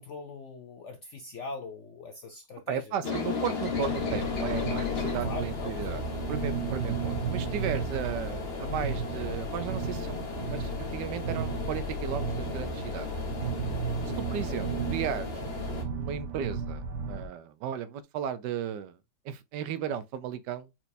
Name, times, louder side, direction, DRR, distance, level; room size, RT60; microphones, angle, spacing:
voice 1, 0.0-3.0 5.2-6.0 14.0-14.8, left 4 dB, 75° left, 0.6 m, -42 dB
voice 2, 2.7-6.0 6.3-10.2 10.5-13.1 14.2-19.0 19.2-20.7, right 8 dB, 85° right, 1.2 m, -35 dB
sound 1, 3.0-15.8, left 5 dB, 40° left, 1.2 m, -36 dB
sound 2, 3.6-17.3, right 4 dB, 55° right, 1.0 m, -34 dB
4.4 x 4.3 x 2.6 m
omnidirectional pair, 1.8 m